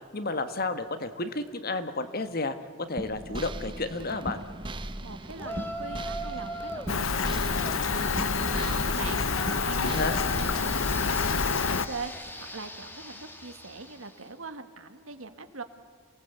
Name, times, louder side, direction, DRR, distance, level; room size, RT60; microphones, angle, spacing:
voice 1, 0.1-2.5 2.9-4.4 9.8-10.2, left 3 dB, 45° left, 10 dB, 1.3 m, -31 dB
sound 1, 3.0-10.8, right 1 dB, 25° right, 0.9 m, -38 dB
voice 2, 5.0-15.6, right 3 dB, 80° right, 8 dB, 1.8 m, -42 dB
Yell, 5.4-6.9 7.5-14.2, equal, 10° left, 2.0 m, -40 dB
Rain, 6.9-11.9, left 5 dB, 75° left, 0.9 m, -27 dB
27.0 x 18.5 x 8.2 m, 2.1 s
head